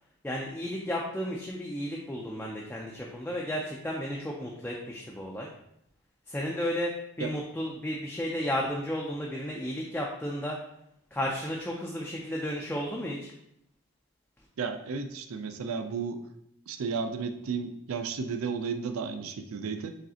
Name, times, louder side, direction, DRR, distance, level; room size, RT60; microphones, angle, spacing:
voice 1, 0.2-5.5 6.3-10.6 11.1-13.3, equal, 10° left, -3 dB, 0.3 m, -33 dB
voice 2, 14.6-16.2 16.7-19.9, right 5 dB, 75° right, 8 dB, 0.4 m, -33 dB
4.8 x 3.2 x 2.8 m, 0.77 s
head